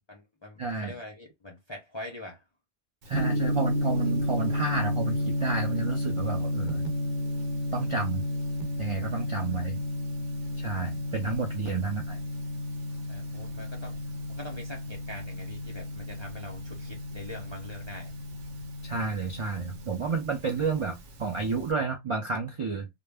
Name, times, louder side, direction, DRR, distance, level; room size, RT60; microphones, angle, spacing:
voice 1, 0.1-2.4 10.5-10.6 13.1-14.0 14.3-18.1, left 1 dB, 40° left, 0.4 m, -43 dB
voice 2, 0.6-0.9 3.1-6.8 7.7-8.2 8.8-9.8 10.6-12.2 18.8-22.9, right 4 dB, 55° right, 0.3 m, -31 dB
Gong, 3.1-21.7, left 1 dB, 90° right, 1.0 m, -32 dB
2.1 x 2.1 x 3.3 m
omnidirectional pair, 1.2 m